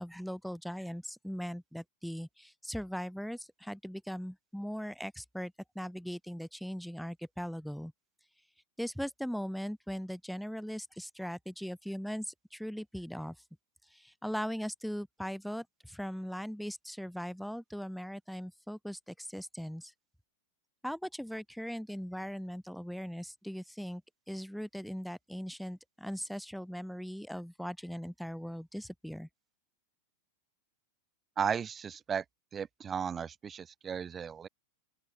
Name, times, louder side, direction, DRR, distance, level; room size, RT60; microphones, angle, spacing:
voice 1, 0.0-7.9 8.8-13.4 13.9-19.9 20.8-24.0 24.3-29.3, equal, ahead, 0.6 m, -39 dB
voice 2, 31.4-32.2 32.5-34.5, right 7 dB, 20° right, 1.2 m, -35 dB
open air
figure-of-eight pair, 90°, 0 cm